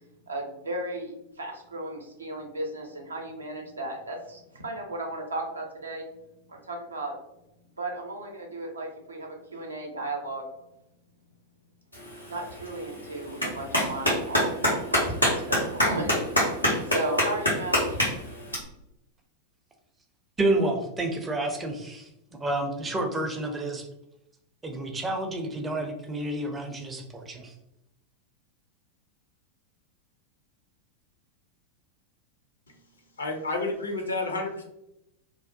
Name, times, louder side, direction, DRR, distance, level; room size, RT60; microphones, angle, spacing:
voice 1, 0.3-6.1 6.5-7.2 7.8-10.5 12.3-14.5 14.9-18.0, right 2 dB, 75° right, 1 dB, 0.5 m, -35 dB
Clapping, 11.9-18.5, left 1 dB, 90° left, 1.0 m, -27 dB
voice 2, 20.4-23.9 24.6-27.5, right 2 dB, 15° right, 3 dB, 0.5 m, -29 dB
voice 3, 33.2-34.6, left 2 dB, 75° left, 2 dB, 0.5 m, -30 dB
2.6 x 2.1 x 2.5 m, 0.85 s
figure-of-eight pair, 90°, 0 cm